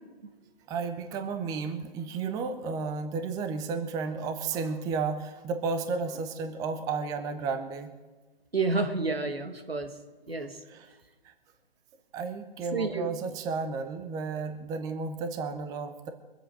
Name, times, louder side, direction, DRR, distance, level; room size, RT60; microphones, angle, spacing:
voice 1, 0.7-7.9 10.4-10.9 11.2-11.3 12.1-16.1, right 4 dB, 10° right, 7 dB, 0.7 m, -33 dB
voice 2, 8.5-9.9 10.3-10.5 12.7-13.1, right 3 dB, 90° right, 6 dB, 1.8 m, -29 dB
22.5 x 8.0 x 6.2 m, 1.2 s
figure-of-eight pair, 130°, 29 cm